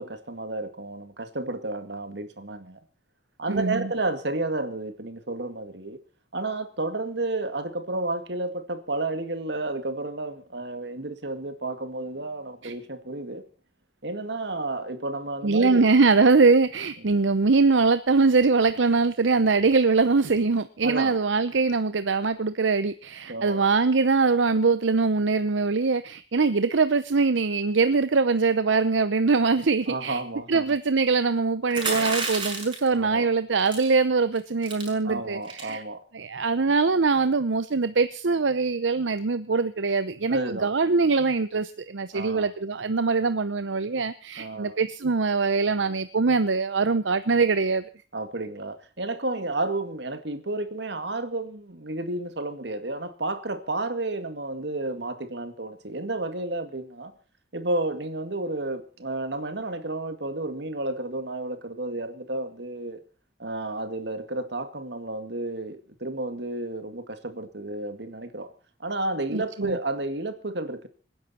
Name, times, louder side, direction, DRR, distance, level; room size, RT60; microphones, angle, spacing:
voice 1, 0.0-2.8 3.4-6.0 6.3-13.4 14.0-15.9 20.8-21.2 23.3-23.6 29.9-30.7 32.9-33.3 35.0-36.0 40.3-40.7 42.1-42.5 44.4-44.8 48.1-57.1 57.5-63.0 63.4-68.5 68.8-70.9, right 2 dB, 65° right, 2.1 m, -31 dB
voice 2, 3.5-3.9 12.6-12.7 15.4-30.2 30.5-35.8 36.1-47.8 69.3-69.8, right 4 dB, 80° right, 0.7 m, -22 dB
sound 1, 31.7-32.9 33.7-33.9 34.3-34.4 34.6-34.9 35.4-35.7, right 3 dB, 25° right, 5.8 m, -30 dB
26.5 x 10.5 x 4.3 m
head